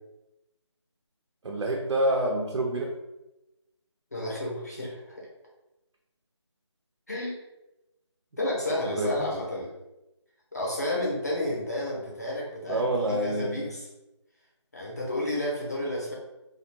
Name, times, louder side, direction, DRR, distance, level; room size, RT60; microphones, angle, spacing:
voice 1, 1.4-2.9 8.8-9.3 12.7-13.7, right 1 dB, 85° right, -1 dB, 0.5 m, -27 dB
voice 2, 4.1-5.2 7.1-7.4 8.4-9.7 10.5-13.9 14.7-16.1, left 1 dB, 35° left, -4 dB, 0.6 m, -31 dB
2.2 x 2.2 x 2.9 m, 0.96 s
figure-of-eight pair, 180°, 15 cm